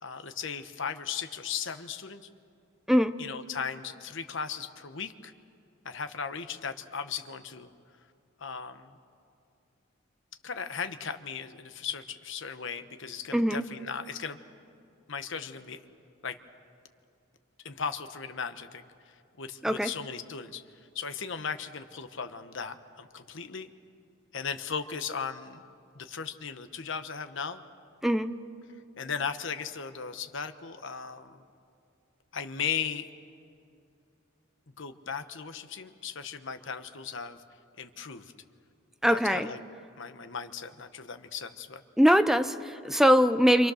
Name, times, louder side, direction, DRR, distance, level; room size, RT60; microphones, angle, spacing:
voice 1, 0.0-2.3 3.2-5.3 5.8-7.7 8.4-9.0 10.4-14.4 15.1-15.8 16.2-16.4 17.6-20.6 20.9-23.7 24.3-25.6 25.9-27.6 29.0-31.4 32.3-33.1 34.8-37.4 37.8-38.3 39.1-39.6 40.0-41.8, left 6 dB, 65° left, 9 dB, 1.1 m, -37 dB
voice 2, 39.0-39.5 42.0-43.7, equal, ahead, 10 dB, 0.6 m, -22 dB
28.5 x 26.0 x 6.5 m, 2.4 s
head